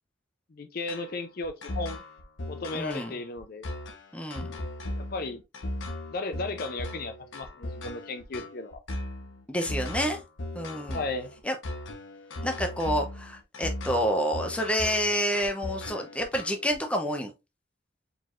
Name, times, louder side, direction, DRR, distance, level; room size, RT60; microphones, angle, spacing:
voice 1, 0.5-2.0 2.5-3.7 5.0-5.4 6.1-8.8 10.9-11.4, left 3 dB, 50° left, 0.5 m, -35 dB
sound 1, 0.9-16.7, left 1 dB, 80° left, 0.9 m, -37 dB
voice 2, 2.7-3.2 4.1-4.5 9.5-10.2 10.5-11.0 11.4-11.5 12.4-17.3, equal, 5° left, 0.6 m, -28 dB
4.6 x 3.9 x 2.5 m
head